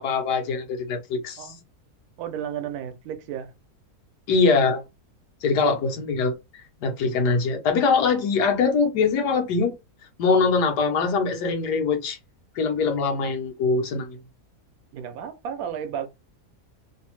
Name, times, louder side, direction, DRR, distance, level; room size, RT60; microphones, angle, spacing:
voice 1, 0.0-1.5 4.3-4.8 5.4-6.3 6.8-9.7 10.2-12.2 12.6-14.2, left 4 dB, 80° left, 1.4 m, -22 dB
voice 2, 2.2-3.5 14.9-16.1, right 9 dB, 75° right, 1.0 m, -33 dB
3.2 x 2.0 x 2.9 m
omnidirectional pair, 1.7 m